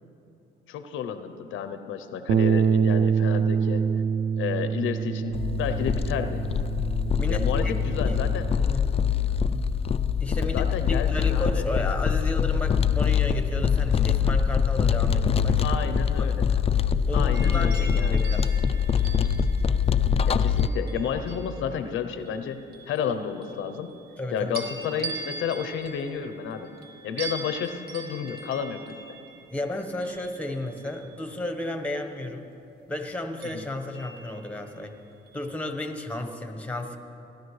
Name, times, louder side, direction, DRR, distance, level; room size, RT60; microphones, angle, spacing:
voice 1, 0.7-3.9 4.4-6.4 7.3-8.5 10.3-11.7 15.6-16.5 17.1-18.3 20.2-24.0 24.3-26.7 27.0-29.0 33.5-33.6, left 7 dB, 80° left, 9 dB, 0.6 m, -31 dB
Bass guitar, 2.3-8.5, right 6 dB, 75° right, 0.5 m, -26 dB
sound 1, 5.3-20.7, left 7 dB, 30° left, 0.4 m, -24 dB
voice 2, 7.2-7.6 8.0-8.2 8.5-8.9 10.2-16.4 17.1-18.5 24.2-24.5 29.5-32.5 32.9-34.9 35.3-37.0, left 1 dB, 5° left, 5 dB, 1.1 m, -33 dB
sound 2, 17.3-21.7 22.3-24.2 24.5-31.5 33.4-34.8 35.3-35.5, right 3 dB, 55° right, 1.5 m, -42 dB
17.5 x 11.5 x 3.2 m, 2.9 s
cardioid pair, 90°, 20 cm